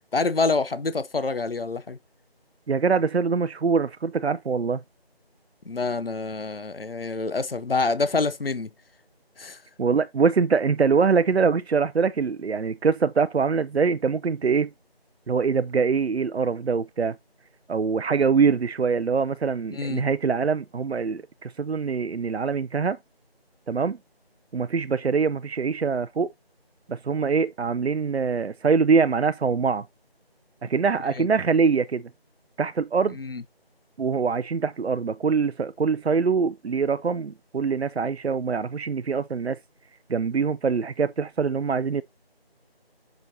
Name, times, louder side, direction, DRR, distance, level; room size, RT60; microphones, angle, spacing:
voice 1, 0.1-2.0 5.7-8.7 9.4-9.6 19.7-20.0 31.2-31.3 33.2-33.4, left 3 dB, 65° left, 0.8 m, -26 dB
voice 2, 2.7-4.8 9.8-14.7 15.3-17.1 17.7-23.0 23.7-24.0 24.5-26.3 26.9-29.9 30.6-32.0 32.6-33.2 34.0-39.6 40.1-42.0, right 5 dB, 85° right, 0.6 m, -23 dB
7.0 x 6.3 x 2.8 m
figure-of-eight pair, 175°, 31 cm